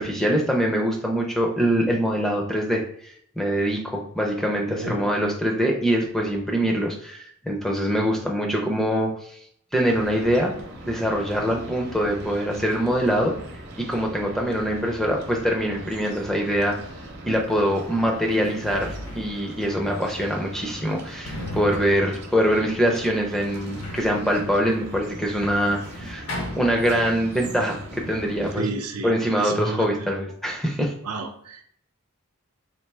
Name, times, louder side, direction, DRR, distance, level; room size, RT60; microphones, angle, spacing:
voice 1, 0.0-9.4 9.7-10.5 10.8-13.4 13.8-16.8 17.3-26.3 26.5-28.7 29.0-30.9, equal, ahead, 0 dB, 0.5 m, -24 dB
voice 2, 4.7-5.1 28.6-30.1 31.0-31.6, right 3 dB, 90° right, 5 dB, 0.6 m, -31 dB
sound 1, 9.9-28.5, right 1 dB, 50° right, 0.7 m, -41 dB
Sliding door, 17.5-17.6 18.2-27.4 27.6-28.5, left 1 dB, 70° left, 1.0 m, -39 dB
4.3 x 2.7 x 3.4 m, 0.66 s
head